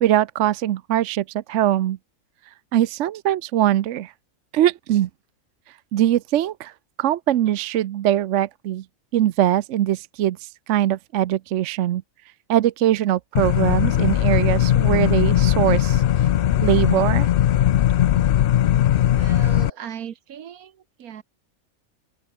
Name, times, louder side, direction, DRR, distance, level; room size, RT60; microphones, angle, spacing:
voice 1, 0.0-2.0 2.7-4.1 4.5-5.1 5.9-6.7 7.0-8.8 9.1-12.0 12.5-16.0 16.6-17.3, right 12 dB, 65° right, 0.9 m, -21 dB
sound 1, 13.4-19.7, left 11 dB, 70° left, 0.5 m, -19 dB
voice 2, 19.1-21.2, right 9 dB, 90° right, 1.5 m, -37 dB
open air
omnidirectional pair, 1.5 m